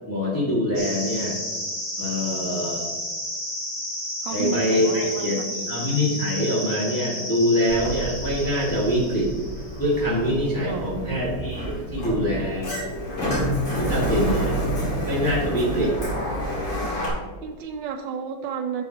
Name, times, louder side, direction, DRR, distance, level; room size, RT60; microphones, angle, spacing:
voice 1, 0.1-1.4 2.0-2.9 4.3-5.4 5.7-9.3 9.8-12.7 13.8-14.6 15.1-15.9, equal, 10° left, -6 dB, 2.0 m, -24 dB
sound 1, 0.8-9.9, left 1 dB, 35° left, 2.4 m, -32 dB
voice 2, 4.2-5.8 10.7-11.3 13.7-14.2 15.8-15.9 16.8-17.1 17.4-18.8, right 6 dB, 85° right, 3 dB, 1.4 m, -33 dB
Sliding door, 7.7-17.1, equal, 80° left, 3.2 m, -29 dB
11.0 x 7.2 x 2.9 m, 1.3 s
omnidirectional pair, 2.0 m